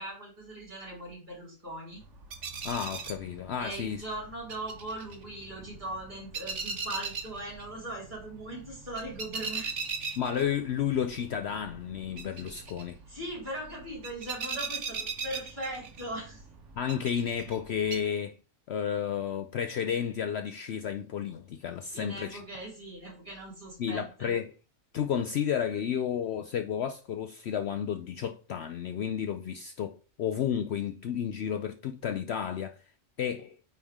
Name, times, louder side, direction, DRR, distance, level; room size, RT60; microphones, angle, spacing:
voice 1, 0.0-2.0 3.6-9.8 13.1-16.4 21.9-24.4, right 1 dB, 35° right, 4.3 m, -40 dB
sound 1, 2.0-18.0, right 5 dB, 65° right, 1.4 m, -40 dB
voice 2, 2.6-4.0 10.2-12.9 16.8-18.3 18.7-22.4 23.8-24.5 24.9-32.8 33.2-33.5, left 8 dB, 65° left, 0.7 m, -32 dB
9.4 x 3.6 x 3.6 m
omnidirectional pair, 1.4 m